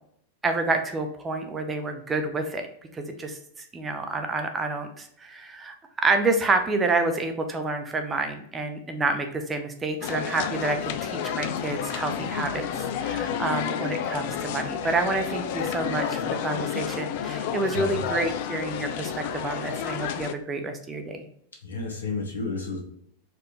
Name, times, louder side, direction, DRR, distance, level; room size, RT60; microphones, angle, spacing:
voice 1, 0.4-2.7 2.9-12.6 13.0-21.3, right 3 dB, 15° right, 6 dB, 0.6 m, -28 dB
sound 1, 10.0-20.3, left 8 dB, 50° left, 0.3 m, -30 dB
voice 2, 17.7-18.1 21.6-22.8, left 3 dB, 75° left, 1 dB, 1.0 m, -31 dB
4.5 x 2.5 x 2.9 m, 0.68 s
figure-of-eight pair, 90°, 0 cm